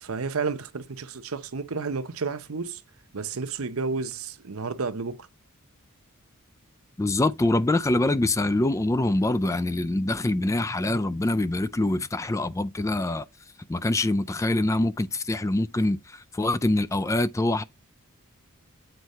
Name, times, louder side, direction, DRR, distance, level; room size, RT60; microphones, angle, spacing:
voice 1, 0.0-2.8 3.1-5.3, right 4 dB, 70° right, 0.8 m, -31 dB
voice 2, 7.0-13.3 13.7-17.6, left 2 dB, 15° left, 0.3 m, -24 dB
8.0 x 4.6 x 4.1 m
head